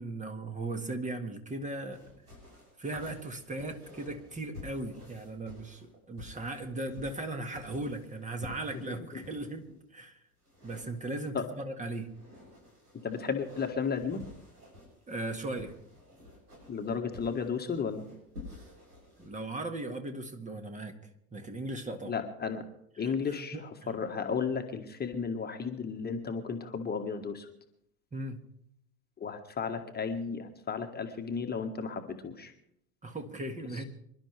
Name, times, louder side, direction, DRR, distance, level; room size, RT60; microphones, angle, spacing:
voice 1, 0.0-2.0 2.8-10.2 10.6-12.1 15.1-15.8 19.2-21.0 21.3-22.2 23.0-23.7 28.1-28.4 33.0-33.8, right 2 dB, 15° right, 6 dB, 1.9 m, -38 dB
sound 1, 1.9-9.7 10.4-11.5 11.9-19.3, left 2 dB, 80° right, 7.6 m, -51 dB
voice 2, 8.9-9.2 11.3-11.4 13.0-14.2 16.7-18.0 22.0-22.6 23.0-27.5 29.2-32.5 33.7-33.8, left 5 dB, 20° left, 5 dB, 1.6 m, -34 dB
26.5 x 12.0 x 3.4 m, 0.73 s
figure-of-eight pair, 75°, 44 cm